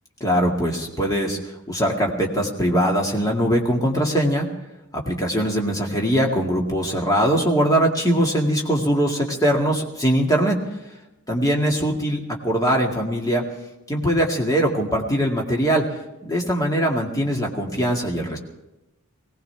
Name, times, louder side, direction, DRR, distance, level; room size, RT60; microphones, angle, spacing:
voice 1, 0.2-4.5 4.9-10.6 11.3-13.4 13.9-15.8 16.2-18.4, equal, 15° left, 0 dB, 2.0 m, -21 dB
21.5 x 18.0 x 3.4 m, 0.98 s
head